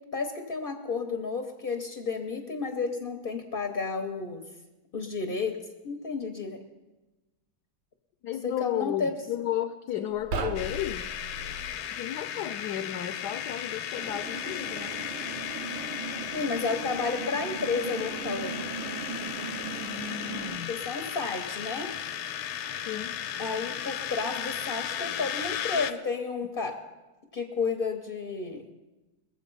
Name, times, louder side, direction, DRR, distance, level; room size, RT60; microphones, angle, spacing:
voice 1, 0.1-4.4 4.9-5.6 5.8-6.6 8.4-9.1 10.0-10.1 16.3-18.6 20.7-21.9 23.4-26.8 27.3-28.7, left 4 dB, 55° left, 4 dB, 0.6 m, -32 dB
voice 2, 8.2-11.1 11.9-15.0 19.8-20.8 22.9-23.2, left 12 dB, 75° left, 8 dB, 0.9 m, -33 dB
sound 1, 10.1-11.8, right 2 dB, 60° right, 1.4 m, -35 dB
sound 2, 10.6-25.9, left 10 dB, 90° left, 1.5 m, -35 dB
sound 3, 14.0-20.6, right 5 dB, 80° right, 1.6 m, -39 dB
21.5 x 7.5 x 5.4 m, 1.1 s
omnidirectional pair, 2.3 m